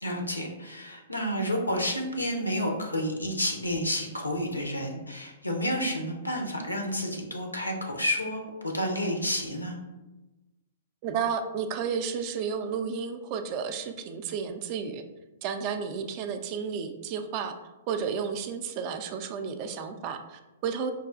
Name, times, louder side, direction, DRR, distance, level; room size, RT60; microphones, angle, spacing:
voice 1, 0.0-9.7, equal, 90° left, 2 dB, 0.6 m, -30 dB
voice 2, 11.0-15.0 15.4-17.6 17.9-20.9, right 6 dB, 40° right, 8 dB, 0.3 m, -32 dB
5.3 x 2.3 x 2.4 m, 1.1 s
figure-of-eight pair, 110°, 0 cm